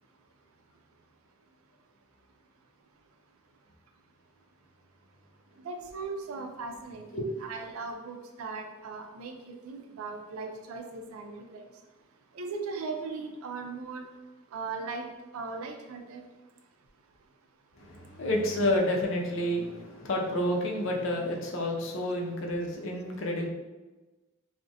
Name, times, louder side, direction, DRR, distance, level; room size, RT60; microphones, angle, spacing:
voice 1, 5.7-7.0 7.4-11.6 12.4-14.0 14.5-15.0 15.3-16.2, right 4 dB, 85° right, 4 dB, 0.4 m, -38 dB
voice 2, 17.8-23.5, left 1 dB, 65° left, 0 dB, 0.4 m, -29 dB
2.4 x 2.0 x 2.6 m, 1.1 s
head